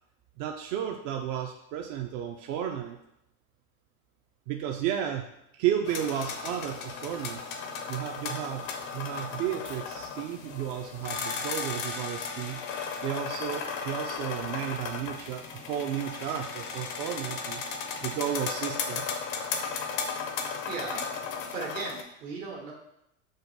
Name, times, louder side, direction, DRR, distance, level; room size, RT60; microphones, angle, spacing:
voice 1, 0.4-3.0 4.5-5.2 5.6-7.4 7.9-8.7 8.9-12.6 13.0-17.6 18.0-19.1, right 10 dB, 50° right, 3 dB, 0.4 m, -33 dB
sound 1, 5.8-22.0, left 5 dB, 85° left, 0.7 m, -35 dB
voice 2, 20.6-21.0 21.5-22.7, right 4 dB, 75° right, -2 dB, 1.4 m, -36 dB
6.2 x 2.1 x 2.7 m, 0.81 s
hypercardioid pair, 105°, 40 cm